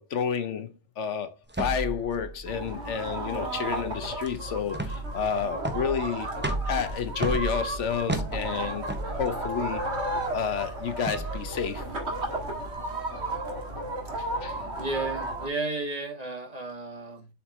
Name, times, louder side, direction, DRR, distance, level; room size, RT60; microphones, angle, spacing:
voice 1, 0.0-6.3 6.7-8.9 9.1-9.8 10.3-11.8 14.2-14.6, left 7 dB, 75° left, 1.1 m, -30 dB
sound 1, 1.5-12.7, right 2 dB, 10° right, 0.6 m, -35 dB
sound 2, 2.5-15.5, right 1 dB, 60° right, 1.9 m, -34 dB
voice 2, 14.8-17.3, right 3 dB, 30° right, 1.9 m, -33 dB
7.3 x 4.8 x 3.1 m
omnidirectional pair, 1.3 m